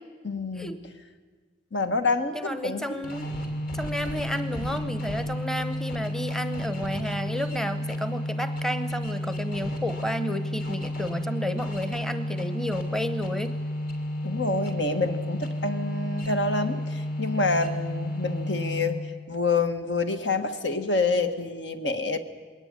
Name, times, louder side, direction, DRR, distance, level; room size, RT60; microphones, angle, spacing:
voice 1, 0.2-0.7 1.7-3.0 14.2-19.0 19.3-22.2, left 3 dB, 75° left, 9 dB, 1.6 m, -27 dB
voice 2, 2.3-3.3 3.7-13.5, equal, 5° left, 11 dB, 0.8 m, -31 dB
sound 1, 3.0-19.2, left 1 dB, 50° left, 3.1 m, -32 dB
21.0 x 18.0 x 9.5 m, 1.5 s
head